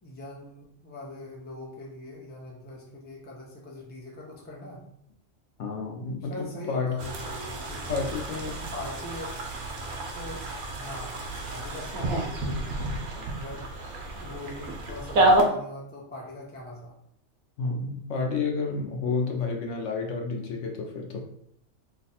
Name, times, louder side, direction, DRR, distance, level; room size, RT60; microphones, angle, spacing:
voice 1, 0.0-4.8 6.3-8.0 8.7-9.4 10.2-10.4 10.7-11.1 11.5-13.6 14.1-16.9, left 1 dB, 10° left, -3 dB, 0.5 m, -41 dB
voice 2, 5.6-7.0 7.9-8.6 17.6-21.2, left 4 dB, 70° left, 1 dB, 1.0 m, -30 dB
sound 1, 7.0-15.4, right 2 dB, 80° right, 1.1 m, -29 dB
3.1 x 2.3 x 4.1 m, 0.71 s
omnidirectional pair, 1.4 m